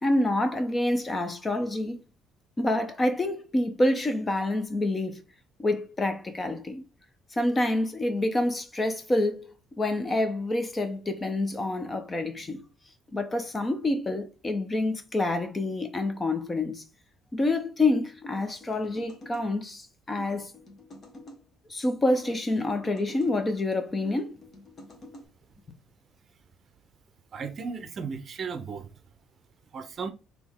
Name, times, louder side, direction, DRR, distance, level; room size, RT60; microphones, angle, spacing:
voice 1, 0.0-2.0 2.6-5.2 5.6-6.8 7.3-9.5 9.8-12.6 13.1-16.8 17.3-20.5 21.7-24.3, left 2 dB, 20° left, 0.7 m, -27 dB
sound 1, 18.2-19.5 20.2-21.4 22.1-23.3 24.0-25.3, left 1 dB, 35° left, 1.3 m, -47 dB
voice 2, 27.3-28.9 29.7-30.1, right 5 dB, 40° right, 0.7 m, -35 dB
4.1 x 3.0 x 3.6 m
cardioid pair, 130°, 0 cm